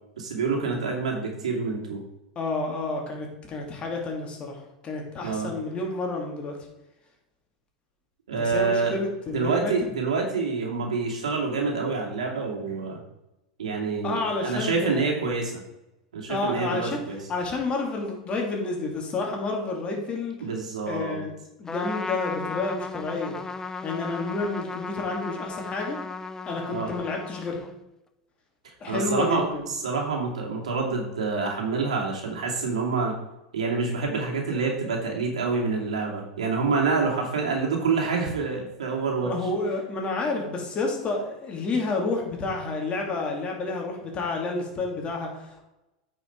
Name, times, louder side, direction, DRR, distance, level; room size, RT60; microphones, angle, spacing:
voice 1, 0.2-2.0 5.2-5.5 8.3-9.0 9.3-13.0 13.6-15.5 16.1-17.2 20.4-21.2 26.7-26.9 28.9-33.1 33.5-39.3, right 4 dB, 85° right, 0 dB, 2.5 m, -27 dB
voice 2, 2.4-4.6 4.8-6.6 8.4-9.7 14.0-15.1 16.3-17.0 17.3-20.4 20.9-21.3 21.6-23.4 23.8-26.0 26.5-27.6 28.8-29.7 39.2-45.6, left 3 dB, 30° left, 1 dB, 2.7 m, -30 dB
Trumpet, 21.7-27.8, left 4 dB, 15° left, 0.6 m, -35 dB
9.1 x 5.6 x 4.6 m, 0.94 s
hypercardioid pair, 100°, 4 cm